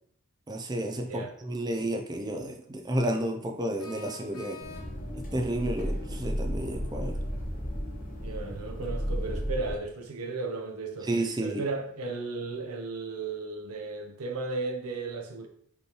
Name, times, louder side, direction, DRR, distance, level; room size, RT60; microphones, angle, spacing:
voice 1, 0.5-4.6 5.1-7.2 11.1-11.6, right 1 dB, 20° right, 0.4 m, -31 dB
sound 1, 3.8-5.2, left 4 dB, 90° left, 1.3 m, -46 dB
sound 2, 4.6-9.8, equal, 35° left, 1.2 m, -33 dB
voice 2, 8.1-11.1 11.4-15.5, right 3 dB, 85° right, 0.8 m, -35 dB
5.2 x 3.2 x 2.9 m
head